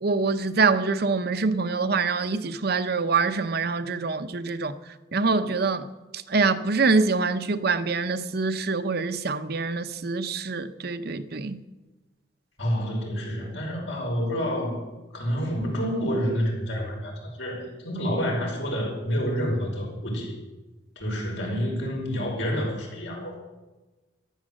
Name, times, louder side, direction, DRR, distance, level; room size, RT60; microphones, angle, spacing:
voice 1, 0.0-4.8 5.1-5.9 6.1-11.6, right 4 dB, 55° right, 0.8 m, -25 dB
voice 2, 12.6-14.8 15.1-20.3 21.0-23.4, equal, 80° left, 5.5 m, -28 dB
14.0 x 11.5 x 7.7 m
head